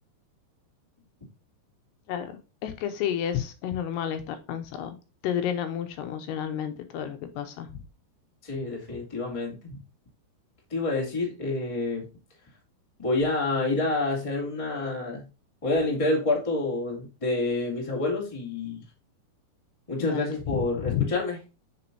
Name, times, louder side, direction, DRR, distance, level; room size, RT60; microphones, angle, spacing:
voice 1, 2.1-5.0 5.2-7.7 20.0-21.1, left 9 dB, 80° left, 8 dB, 2.7 m, -31 dB
voice 2, 8.4-9.8 10.7-12.0 13.0-15.2 15.6-18.8 19.9-21.4, left 2 dB, 10° left, -2 dB, 1.6 m, -28 dB
8.4 x 5.3 x 2.7 m, 0.31 s
omnidirectional pair, 5.0 m